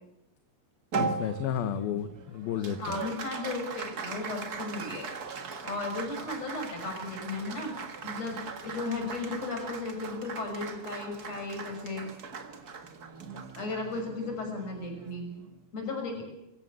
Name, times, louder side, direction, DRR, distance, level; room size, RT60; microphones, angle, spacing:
Applause, 0.9-15.6, right 5 dB, 85° right, 0.8 m, -39 dB
voice 1, 1.0-3.0, left 9 dB, 70° left, 10 dB, 2.8 m, -32 dB
voice 2, 2.8-5.1 5.6-7.7 8.0-12.1 13.5-15.3 15.7-16.2, left 3 dB, 40° left, 3 dB, 7.2 m, -35 dB
24.0 x 16.0 x 8.2 m, 0.88 s
omnidirectional pair, 4.7 m